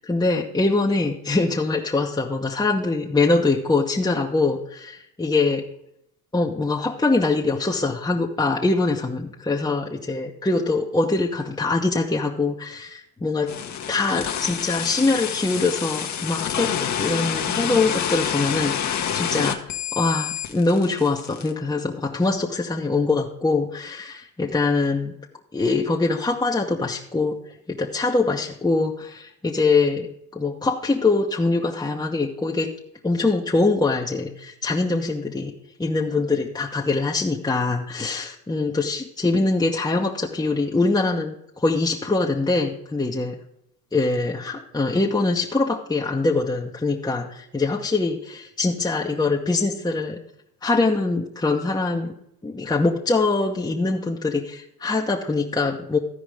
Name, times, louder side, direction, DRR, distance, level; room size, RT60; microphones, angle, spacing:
voice 1, 0.0-5.6 6.3-13.5 13.9-19.6 19.9-25.1 25.5-27.4 27.7-30.1 30.3-32.7 33.0-35.5 35.8-43.4 43.9-50.2 50.6-52.1 52.4-56.0, left 3 dB, 10° left, -2 dB, 1.0 m, -23 dB
sound 1, 13.5-21.5, left 9 dB, 40° left, 1.1 m, -27 dB
14.0 x 5.0 x 4.9 m, 0.75 s
hypercardioid pair, 80°, 45 cm